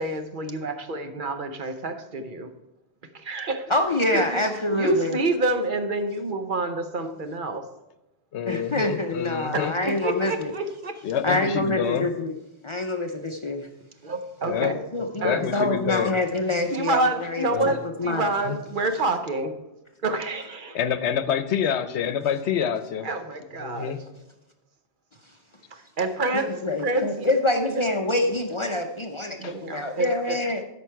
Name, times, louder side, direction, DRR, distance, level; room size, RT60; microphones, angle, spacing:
voice 1, 0.0-2.5 3.1-3.7 4.1-4.4 4.7-7.7 9.5-11.0 14.0-14.8 15.2-15.4 16.7-19.5 20.0-20.8 23.0-23.9 25.7-27.3 27.8-27.9 29.4-30.4, right 2 dB, 50° right, 7 dB, 0.9 m, -28 dB
voice 2, 3.7-5.2 8.5-10.5 11.2-12.3 12.6-13.7 14.6-18.3 26.3-30.6, left 2 dB, 35° left, 4 dB, 0.5 m, -26 dB
voice 3, 8.3-9.8 11.0-12.1 14.4-14.8 15.2-16.2 17.5-17.7 18.4-18.6 20.7-23.1 23.6-24.0 29.4-29.6, left 8 dB, 80° left, 12 dB, 0.9 m, -27 dB
13.0 x 5.2 x 4.5 m, 0.96 s
omnidirectional pair, 1.1 m